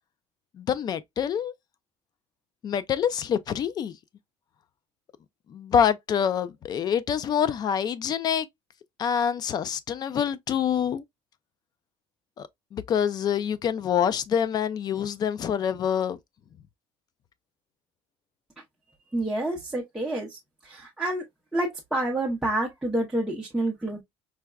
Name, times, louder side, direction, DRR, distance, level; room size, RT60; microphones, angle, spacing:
voice 1, 0.5-1.5 2.6-3.9 5.5-8.5 9.0-11.0 12.4-16.2, left 8 dB, 35° left, 0.4 m, -26 dB
voice 2, 19.1-20.4 20.6-21.2 21.5-24.0, right 1 dB, 5° right, 0.7 m, -28 dB
4.6 x 2.1 x 2.2 m
cardioid pair, 145°, 12 cm